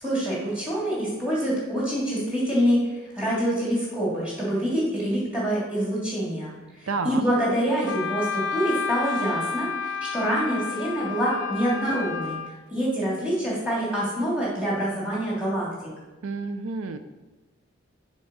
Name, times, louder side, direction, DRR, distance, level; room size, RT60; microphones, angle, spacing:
voice 1, 0.0-2.9 3.1-6.5 6.8-12.4 12.7-15.7, equal, 5° right, -6 dB, 2.8 m, -26 dB
voice 2, 6.9-7.2 16.2-17.0, right 4 dB, 90° right, 9 dB, 0.5 m, -30 dB
Wind instrument woodwind instrument, 7.9-12.5, left 5 dB, 60° left, 0.5 m, -31 dB
7.1 x 4.5 x 6.3 m, 1.2 s
head